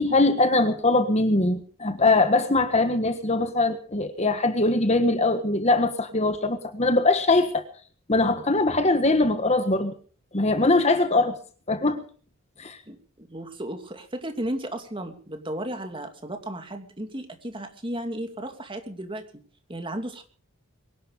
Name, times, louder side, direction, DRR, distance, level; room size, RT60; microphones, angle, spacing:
voice 1, 0.0-7.6 8.1-9.9 10.3-11.4 11.7-12.0 12.6-12.8, left 2 dB, 30° left, 9 dB, 1.4 m, -22 dB
voice 2, 12.9-19.2 19.7-20.2, right 1 dB, 25° right, 6 dB, 2.5 m, -34 dB
23.0 x 11.5 x 5.3 m, 0.43 s
head